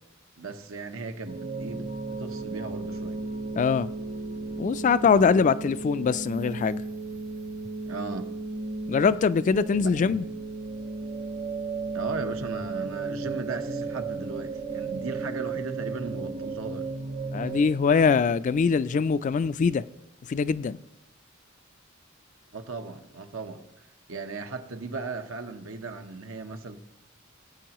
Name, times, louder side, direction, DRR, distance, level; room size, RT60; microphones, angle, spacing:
voice 1, 0.4-3.2 7.8-8.3 11.9-16.9 22.5-23.6 24.1-26.8, right 3 dB, 85° right, 1.1 m, -37 dB
sound 1, 1.3-17.6, right 3 dB, 45° right, 0.9 m, -34 dB
voice 2, 3.6-3.9 4.6-6.8 8.9-10.3 17.3-19.9 20.3-20.8, left 5 dB, 40° left, 0.3 m, -23 dB
19.5 x 8.6 x 3.0 m
head